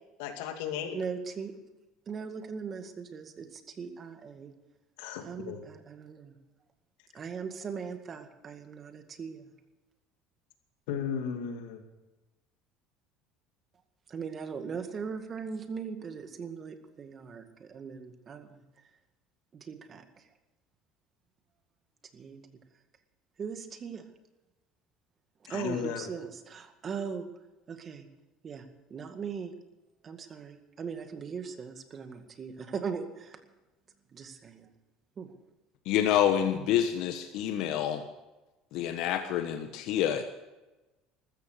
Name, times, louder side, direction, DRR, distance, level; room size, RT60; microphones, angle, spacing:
voice 1, 0.2-1.0 5.0-5.6 10.9-11.8 25.5-26.1, left 7 dB, 85° left, 5 dB, 2.5 m, -35 dB
voice 2, 0.9-1.5 2.1-4.5 5.2-6.4 7.1-9.5 14.1-18.6 19.5-20.0 22.1-22.4 23.4-24.0 25.5-27.3 27.7-28.1 28.4-29.5 30.0-33.4 34.1-34.7 35.2-35.3, right 6 dB, 35° right, 7 dB, 1.9 m, -39 dB
voice 3, 35.8-38.0 38.7-40.2, left 10 dB, 70° left, 6 dB, 1.2 m, -27 dB
14.0 x 14.0 x 6.7 m, 1.1 s
supercardioid pair, 115°, 0 cm